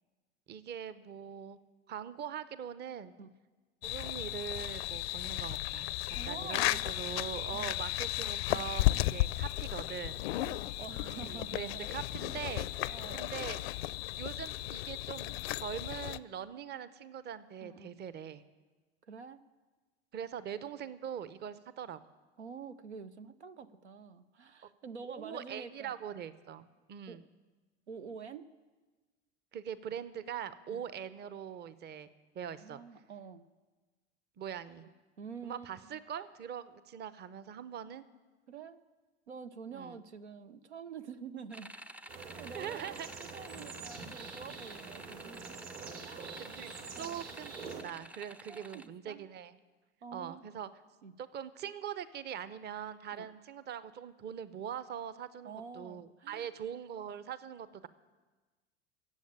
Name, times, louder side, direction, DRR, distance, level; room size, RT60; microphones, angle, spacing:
voice 1, 0.5-1.6 1.9-3.1 3.8-5.9 6.2-10.2 11.2-12.7 13.1-13.6 14.2-18.4 20.1-22.0 25.1-27.2 29.5-32.1 32.3-32.8 34.4-34.8 35.4-38.0 39.7-40.0 42.5-43.1 46.4-47.5 47.8-49.6 50.1-50.7 51.2-57.9, right 8 dB, 30° right, 15 dB, 0.8 m, -42 dB
sound 1, 3.8-16.2, left 17 dB, 65° left, 0.5 m, -34 dB
voice 2, 6.1-6.9 7.5-7.7 10.4-11.9 12.9-13.3 17.6-18.0 19.0-19.4 22.4-26.2 27.1-27.3 27.9-28.5 30.7-30.8 32.6-33.4 34.8-34.9 35.2-36.0 38.5-38.8 39.3-41.8 42.4-42.9 43.2-45.6 46.0-46.2 47.0-47.2 48.5-49.2 50.0-50.4 51.0-51.1 53.1-53.3 55.4-56.5, right 6 dB, 90° right, 12 dB, 0.7 m, -47 dB
sound 2, 41.5-48.9, right 1 dB, 5° right, 0.4 m, -50 dB
sound 3, 42.1-47.8, right 5 dB, 60° right, 2.6 m, -46 dB
14.0 x 7.8 x 8.8 m, 1.3 s
hypercardioid pair, 85°, 33 cm